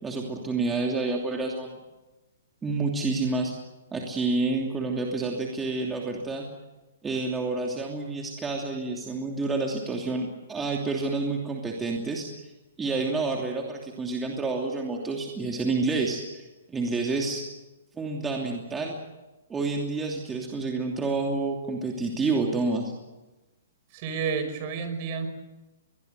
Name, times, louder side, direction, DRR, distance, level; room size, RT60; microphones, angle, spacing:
voice 1, 0.0-1.7 2.6-3.5 3.9-6.5 7.0-12.5 12.8-17.4 17.9-19.0 19.5-22.9, right 3 dB, 10° right, 0 dB, 2.8 m, -29 dB
voice 2, 23.9-25.3, right 5 dB, 40° right, 9 dB, 5.4 m, -30 dB
22.5 x 21.5 x 8.1 m, 1.1 s
hypercardioid pair, 135°, 0 cm